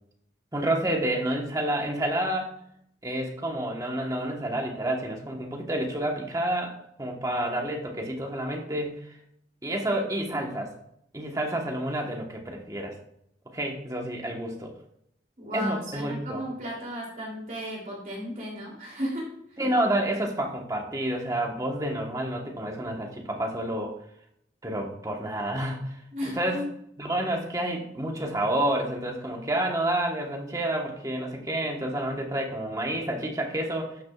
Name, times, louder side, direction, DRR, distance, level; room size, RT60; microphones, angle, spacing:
voice 1, 0.5-2.5 3.0-9.1 9.6-10.7 11.1-13.0 13.5-14.7 15.5-16.4 19.6-23.9 24.6-26.0 26.2-26.6 27.0-34.0, right 1 dB, 20° right, 1 dB, 1.3 m, -29 dB
voice 2, 15.4-19.6 26.1-26.7, equal, 45° right, -3 dB, 3.1 m, -35 dB
12.5 x 5.9 x 2.4 m, 0.72 s
head